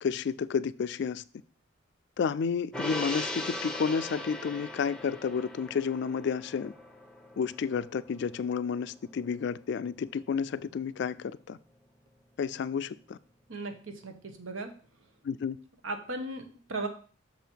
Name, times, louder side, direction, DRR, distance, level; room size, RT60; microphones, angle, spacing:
voice 1, 0.0-1.2 2.2-6.7 7.4-11.6 12.4-13.2 15.2-15.6, left 6 dB, 55° left, 16 dB, 0.3 m, -31 dB
Gong, 2.7-9.3 9.7-9.8, left 1 dB, 5° left, 0.7 m, -39 dB
voice 2, 13.5-14.7 15.0-15.1 15.8-16.9, right 2 dB, 80° right, 6 dB, 1.2 m, -37 dB
6.6 x 5.2 x 4.6 m, 0.40 s
head